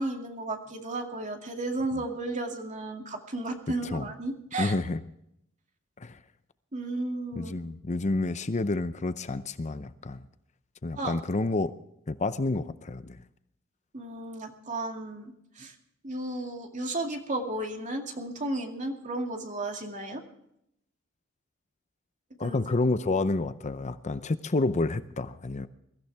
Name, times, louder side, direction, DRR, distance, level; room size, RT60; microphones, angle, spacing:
voice 1, 0.0-4.7 6.7-7.5 11.0-11.1 13.9-15.7 16.0-20.2 22.4-22.6, right 2 dB, 40° right, 3 dB, 2.4 m, -33 dB
voice 2, 4.6-5.0 6.0-6.2 7.4-10.2 10.8-11.7 12.1-13.2 22.4-25.7, left 2 dB, 35° left, 13 dB, 0.6 m, -29 dB
23.0 x 14.5 x 3.4 m, 0.76 s
head